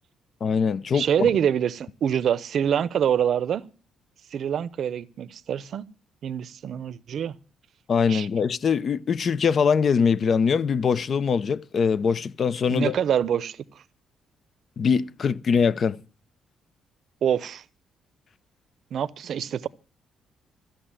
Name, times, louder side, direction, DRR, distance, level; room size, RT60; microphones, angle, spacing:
voice 1, 0.4-1.1 7.9-12.9 14.8-16.0, left 6 dB, 50° left, 0.7 m, -22 dB
voice 2, 0.9-3.6 4.3-5.8 6.2-7.4 8.1-8.3 12.7-13.8 17.2-17.6 18.9-19.7, right 9 dB, 65° right, 0.7 m, -25 dB
14.5 x 6.6 x 8.9 m
cardioid pair, 90°, 0 cm